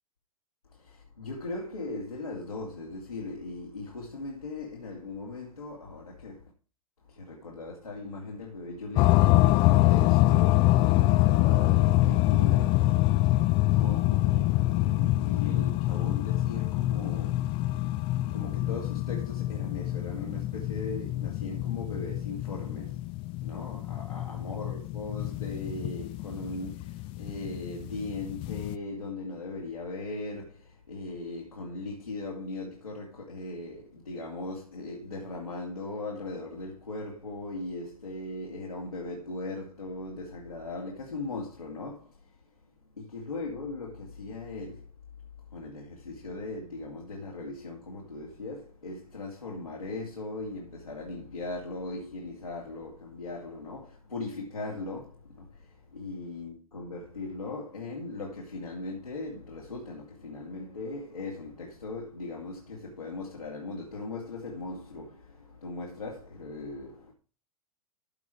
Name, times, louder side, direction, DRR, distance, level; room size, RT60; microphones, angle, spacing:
voice 1, 0.7-6.5 7.1-12.9 13.6-17.9 18.3-23.0 23.4-42.4 43.0-44.9 45.5-67.1, left 2 dB, 85° left, 2.6 m, -39 dB
sound 1, 9.0-28.8, left 17 dB, 30° left, 0.4 m, -25 dB
14.0 x 5.0 x 4.7 m
figure-of-eight pair, 100°, 18 cm